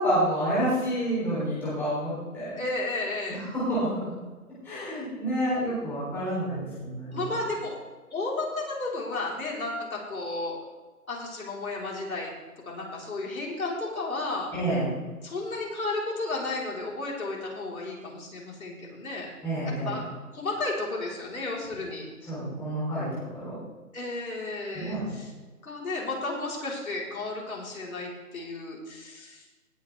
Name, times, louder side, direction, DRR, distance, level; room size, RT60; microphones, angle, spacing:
voice 1, 0.0-2.6 3.7-3.9 4.6-7.2 14.5-15.0 19.4-19.9 22.3-23.5 24.7-25.1, right 1 dB, 5° left, -11 dB, 3.4 m, -28 dB
voice 2, 2.6-3.4 7.1-7.8 8.1-10.6 11.1-12.3 12.6-14.5 15.2-19.3 19.8-22.1 23.9-25.3 25.6-29.4, left 2 dB, 65° left, -3 dB, 4.4 m, -33 dB
18.5 x 9.2 x 3.5 m, 1.3 s
hypercardioid pair, 170°, 45 cm